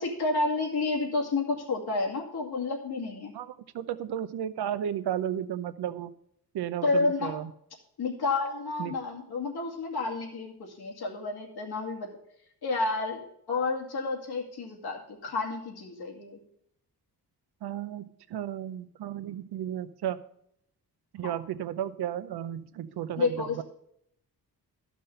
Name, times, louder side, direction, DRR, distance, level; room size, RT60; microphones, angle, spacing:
voice 1, 0.0-3.3 6.8-7.3 8.0-12.1 12.6-13.2 13.5-16.4 21.2-21.3 23.2-23.6, left 3 dB, 80° left, -1 dB, 2.4 m, -30 dB
voice 2, 3.3-6.1 6.5-7.5 8.8-9.0 17.6-18.0 18.3-20.2 21.1-23.6, right 10 dB, 90° right, 13 dB, 0.7 m, -33 dB
12.5 x 6.1 x 5.4 m, 0.72 s
cardioid pair, 100°, 38 cm